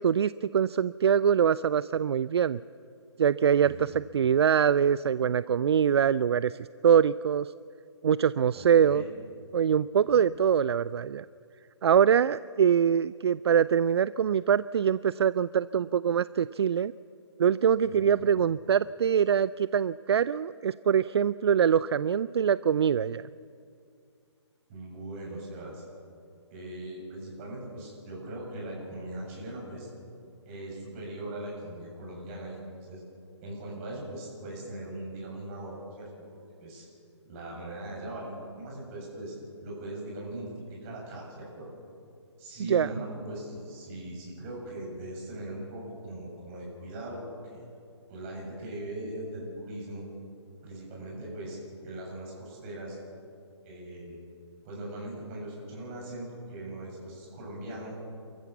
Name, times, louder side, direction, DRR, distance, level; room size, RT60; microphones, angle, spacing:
voice 1, 0.0-2.6 3.2-7.5 8.0-9.0 9.5-11.3 11.8-16.9 17.4-23.2 42.7-42.9, right 8 dB, 60° right, 17 dB, 0.4 m, -24 dB
voice 2, 3.6-4.0 8.5-9.1 10.1-10.2 17.9-18.2 24.7-25.8 26.5-29.9 30.5-33.0 33.4-36.1 36.6-36.8 37.2-39.3 39.6-41.7 42.4-47.6 48.1-50.0 50.6-51.6 51.8-53.0 53.6-54.2 54.6-57.9, right 1 dB, 30° right, -2 dB, 7.7 m, -40 dB
28.0 x 14.5 x 7.1 m, 2.4 s
hypercardioid pair, 150°, 15 cm